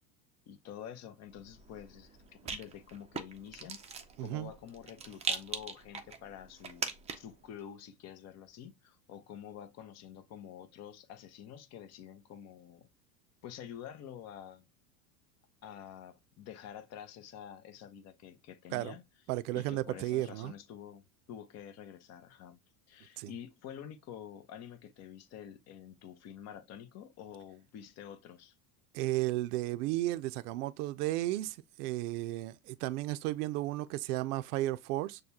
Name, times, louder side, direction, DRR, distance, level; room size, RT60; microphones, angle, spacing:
voice 1, 0.5-3.8 4.2-6.9 7.2-12.9 13.4-14.7 15.6-19.0 19.5-21.0 21.3-22.6 22.9-28.5, left 9 dB, 35° left, 0.7 m, -48 dB
Rattle, 1.3-7.4, right 5 dB, 15° right, 0.5 m, -41 dB
voice 2, 4.2-4.5 18.7-18.9 19.3-20.5 23.2-23.3 28.9-35.2, right 16 dB, 75° right, 0.5 m, -34 dB
6.4 x 2.3 x 2.8 m
supercardioid pair, 115°, 46 cm